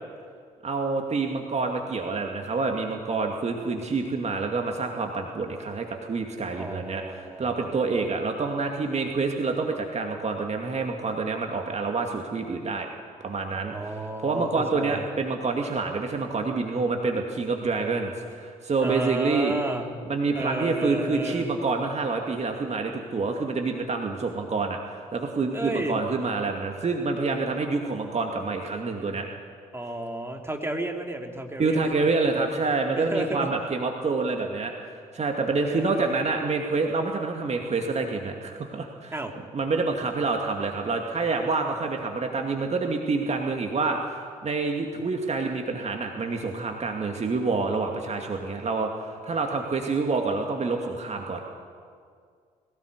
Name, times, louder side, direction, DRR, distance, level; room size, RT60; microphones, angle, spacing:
voice 1, 0.6-12.9 13.2-13.8 14.2-19.6 20.1-29.3 31.6-39.1 39.5-51.4, right 3 dB, 35° right, 2 dB, 2.3 m, -27 dB
voice 2, 6.6-7.7 13.7-15.0 18.8-19.9 20.3-21.5 25.5-26.0 29.7-31.9 33.0-33.5 35.5-36.1 39.1-39.3, right 1 dB, 15° right, 2 dB, 3.2 m, -32 dB
21.0 x 17.5 x 8.2 m, 2.1 s
figure-of-eight pair, 45°, 18 cm